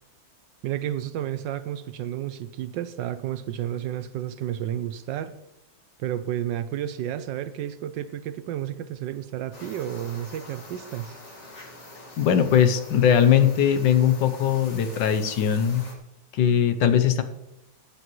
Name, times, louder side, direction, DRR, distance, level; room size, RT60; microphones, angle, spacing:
voice 1, 0.6-5.3 6.0-11.1, right 11 dB, 75° right, 13 dB, 1.1 m, -31 dB
sound 1, 9.5-15.9, left 2 dB, 35° left, 2.1 m, -45 dB
voice 2, 12.2-15.8 16.3-17.2, left 9 dB, 70° left, 8 dB, 1.4 m, -20 dB
16.5 x 10.0 x 3.1 m, 0.84 s
omnidirectional pair, 2.2 m